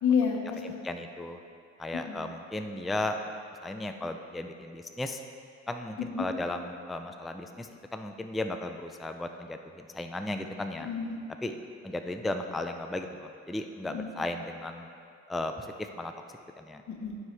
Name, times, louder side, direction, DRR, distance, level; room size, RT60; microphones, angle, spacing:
voice 1, 0.0-0.8 1.9-2.2 6.0-6.3 10.8-11.2 13.8-14.1 16.9-17.2, left 6 dB, 70° left, 0 dB, 1.1 m, -30 dB
voice 2, 0.8-1.4 1.8-3.2 3.6-5.2 5.7-10.9 11.4-11.5 11.8-14.9 15.3-16.1 16.6-16.8, left 2 dB, ahead, 6 dB, 0.3 m, -35 dB
12.5 x 4.6 x 3.2 m, 2.3 s
cardioid pair, 90°, 30 cm